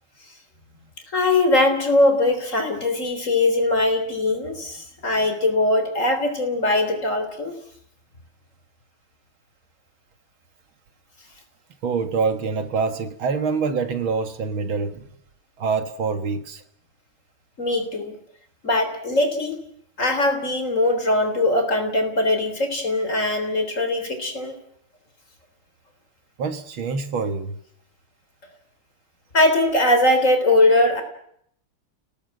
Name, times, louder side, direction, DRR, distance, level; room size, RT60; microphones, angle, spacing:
voice 1, 1.1-7.5 17.6-18.2 18.6-19.5 20.0-24.5 29.3-31.0, left 2 dB, 35° left, 7 dB, 3.9 m, -21 dB
voice 2, 11.8-15.1 15.6-16.6 26.4-27.6, right 5 dB, 70° right, 9 dB, 2.3 m, -25 dB
29.0 x 18.5 x 7.7 m, 0.69 s
omnidirectional pair, 2.4 m